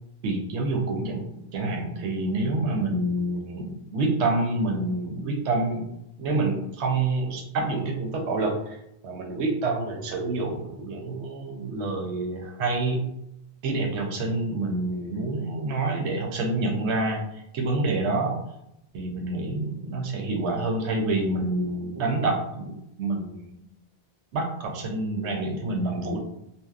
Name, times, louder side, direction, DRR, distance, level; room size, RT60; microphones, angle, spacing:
voice 1, 0.2-5.9 6.2-8.8 9.0-13.1 13.6-18.4 18.9-23.6 24.3-26.2, right 2 dB, 90° right, 2 dB, 0.9 m, -27 dB
2.7 x 2.1 x 2.3 m, 0.81 s
omnidirectional pair, 1.1 m